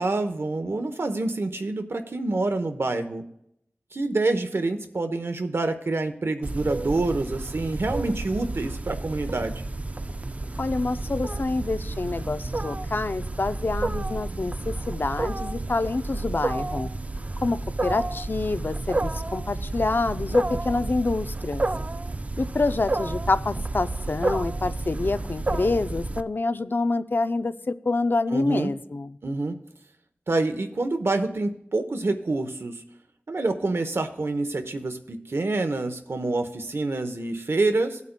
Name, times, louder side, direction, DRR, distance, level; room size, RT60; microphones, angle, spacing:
voice 1, 0.0-3.2 3.9-9.5 28.3-28.7 29.2-29.6 30.3-32.7 33.3-38.0, right 2 dB, 75° right, 7 dB, 0.8 m, -27 dB
Wild animals, 6.4-26.2, right 2 dB, 35° right, 0.3 m, -31 dB
voice 2, 10.6-16.9 17.4-21.7 22.4-29.2, left 3 dB, 55° left, 12 dB, 0.4 m, -27 dB
17.0 x 8.3 x 2.2 m, 0.75 s
wide cardioid pair, 60°, 4 cm